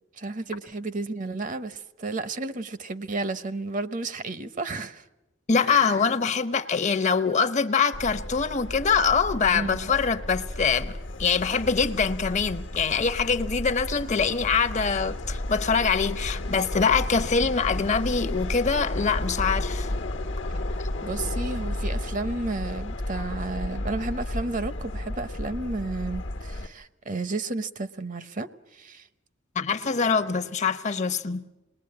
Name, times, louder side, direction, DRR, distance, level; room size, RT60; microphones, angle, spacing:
voice 1, 0.2-5.0 5.6-6.0 9.5-9.9 21.0-29.1, right 3 dB, 45° right, 0.8 m, -32 dB
voice 2, 5.5-10.9 11.2-19.9 29.5-31.4, left 5 dB, 40° left, 0.8 m, -24 dB
Subway metro underground, 7.9-26.7, left 1 dB, 75° left, 1.2 m, -32 dB
27.0 x 20.5 x 8.7 m
head